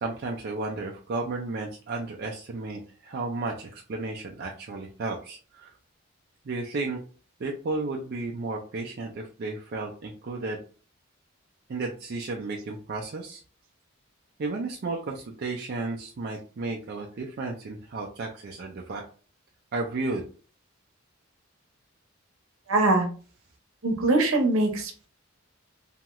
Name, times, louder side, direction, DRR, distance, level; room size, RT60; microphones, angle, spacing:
voice 1, 0.0-5.7 6.5-7.0 7.4-10.6 11.7-13.4 14.4-19.0 19.7-20.2, right 3 dB, 50° right, 0 dB, 0.4 m, -33 dB
voice 2, 22.7-23.1 23.8-25.1, right 2 dB, 75° right, 3 dB, 0.8 m, -22 dB
3.0 x 2.7 x 2.3 m, 0.39 s
head